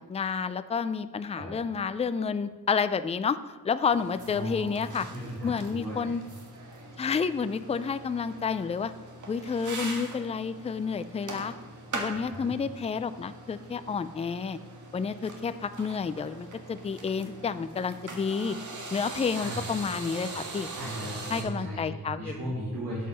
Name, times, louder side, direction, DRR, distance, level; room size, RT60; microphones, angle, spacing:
voice 1, 0.1-3.4 3.6-5.1 5.4-6.2 7.0-8.9 9.3-11.5 11.9-14.6 14.9-18.6 18.9-20.7 21.3-22.5, left 5 dB, 20° left, 12 dB, 0.3 m, -30 dB
sound 1, 3.9-21.4, right 2 dB, 55° right, 1.8 m, -42 dB
voice 2, 4.3-6.1 12.3-12.5 19.3-19.7 20.3-20.4 20.7-23.1, equal, 85° right, -8 dB, 3.5 m, -37 dB
12.0 x 7.5 x 5.4 m, 1.3 s
wide cardioid pair, 175°, 37 cm